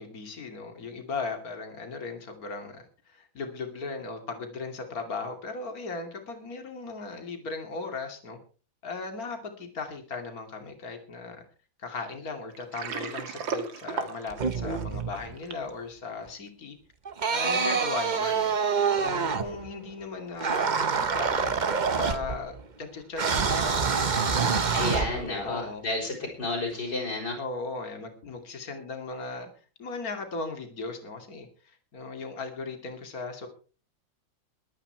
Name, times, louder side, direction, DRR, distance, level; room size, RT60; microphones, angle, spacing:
voice 1, 0.0-8.4 8.8-11.4 11.8-16.8 17.3-18.5 19.0-21.6 21.9-25.8 27.3-29.5 29.8-33.5, left 4 dB, 50° left, 5 dB, 3.0 m, -37 dB
Water, 12.5-15.7, right 6 dB, 80° right, 2.4 m, -35 dB
sound 1, 14.3-15.3 17.1-19.7 20.4-22.6 23.2-25.5, right 5 dB, 40° right, 0.7 m, -26 dB
voice 2, 24.7-27.4, left 2 dB, 65° left, 1 dB, 5.0 m, -31 dB
22.5 x 8.9 x 4.6 m, 0.38 s
omnidirectional pair, 2.1 m